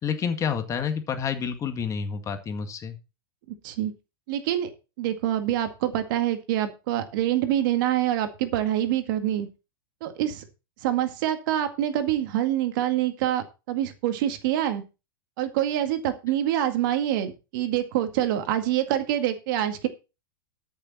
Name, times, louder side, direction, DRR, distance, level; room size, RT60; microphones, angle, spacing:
voice 1, 0.0-3.0, left 6 dB, 25° left, 7 dB, 1.9 m, -29 dB
voice 2, 4.3-4.7 5.0-9.5 10.0-10.4 10.8-14.8 15.4-19.9, right 12 dB, 60° right, 8 dB, 2.0 m, -26 dB
13.5 x 6.8 x 4.2 m, 0.29 s
hypercardioid pair, 115°, 12 cm